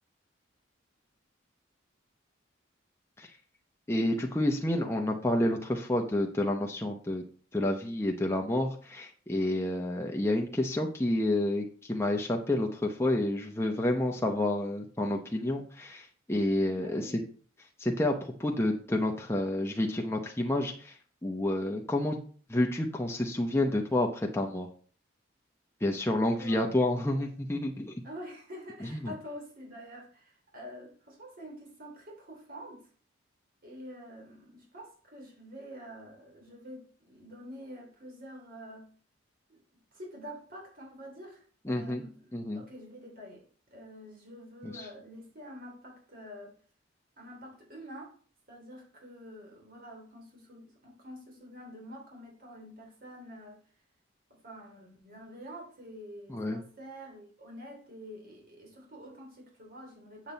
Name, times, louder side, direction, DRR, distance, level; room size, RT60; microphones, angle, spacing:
voice 1, 3.9-7.2 7.5-17.1 17.8-18.1 18.4-20.9 21.2-22.2 22.5-24.7 25.8-28.0 28.9-29.1 41.7-42.0 42.3-42.6 44.6-44.8 56.3-56.6, left 1 dB, 15° left, 1 dB, 0.7 m, -29 dB
voice 2, 16.7-17.2 26.3-26.7 27.1-27.2 28.0-32.9 33.6-38.9 39.5-39.6 39.9-46.5 47.2-48.1 48.5-53.6 54.3-60.3, equal, 50° right, 0 dB, 3.1 m, -47 dB
7.4 x 7.2 x 4.0 m, 0.42 s
head